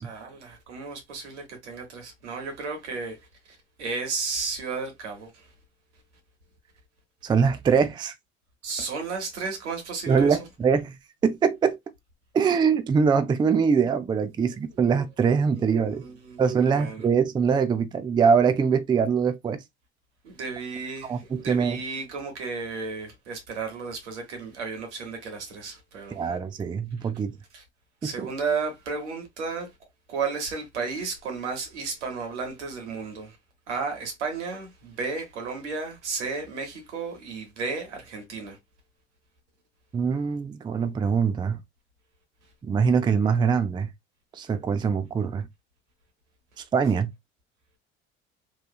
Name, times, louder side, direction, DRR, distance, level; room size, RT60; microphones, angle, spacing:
voice 1, 0.0-5.5 8.6-10.4 14.7-14.8 15.5-16.4 16.7-17.1 20.2-26.4 27.5-27.6 28.0-29.7 30.1-33.4 33.7-38.6, right 4 dB, 85° right, 1.0 m, -33 dB
voice 2, 7.2-8.1 10.1-10.9 11.2-11.8 12.3-16.0 16.4-19.6 21.0-21.8 26.1-27.3 28.0-28.3 39.9-41.6 42.6-43.9 44.3-45.5 46.7-47.1, right 6 dB, 15° right, 0.3 m, -23 dB
2.8 x 2.3 x 2.2 m
hypercardioid pair, 60°, 34 cm